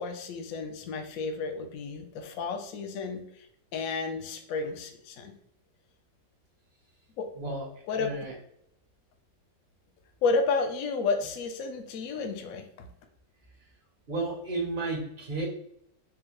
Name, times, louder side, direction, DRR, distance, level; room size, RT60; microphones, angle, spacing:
voice 1, 0.0-3.5 3.7-5.3 7.2-7.3 7.9-8.1 10.2-12.6, left 4 dB, 70° left, 5 dB, 0.8 m, -31 dB
voice 2, 7.4-8.3 14.1-15.5, right 3 dB, 50° right, -2 dB, 0.6 m, -33 dB
4.6 x 2.1 x 3.0 m, 0.71 s
omnidirectional pair, 2.0 m